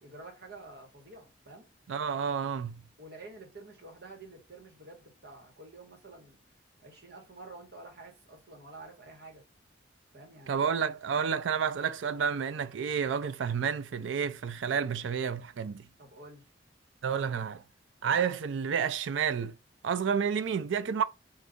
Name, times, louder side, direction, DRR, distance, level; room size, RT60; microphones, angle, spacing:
voice 1, 0.0-1.6 3.0-6.4 6.8-9.4 10.1-10.8 16.0-16.5, right 2 dB, 60° right, 1.4 m, -49 dB
voice 2, 1.9-2.8 10.5-15.9 17.0-17.6 18.0-19.6 19.8-21.0, right 7 dB, 85° right, 0.4 m, -30 dB
3.8 x 2.6 x 3.5 m
head